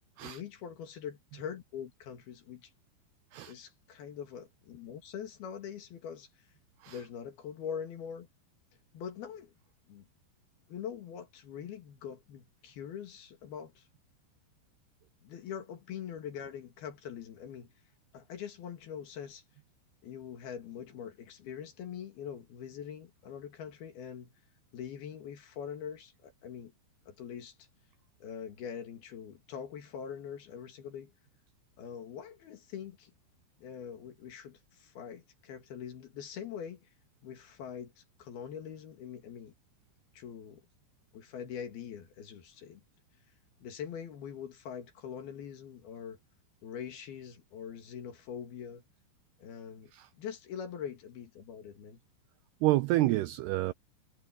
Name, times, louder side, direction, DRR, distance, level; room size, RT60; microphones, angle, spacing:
voice 1, 0.2-2.7 3.5-6.3 6.9-8.3 8.9-9.5 9.9-10.1 10.7-13.9 15.2-17.7 18.1-19.4 20.0-24.3 24.7-26.7 27.1-27.6 28.2-31.1 31.8-33.1 33.6-36.9 37.2-39.5 40.1-40.7 41.1-42.8 43.6-46.2 46.6-48.8 49.4-52.0, left 8 dB, 60° left, 3.8 m, -43 dB
voice 2, 52.6-53.7, right 17 dB, 85° right, 2.3 m, -28 dB
omnidirectional pair, 5.3 m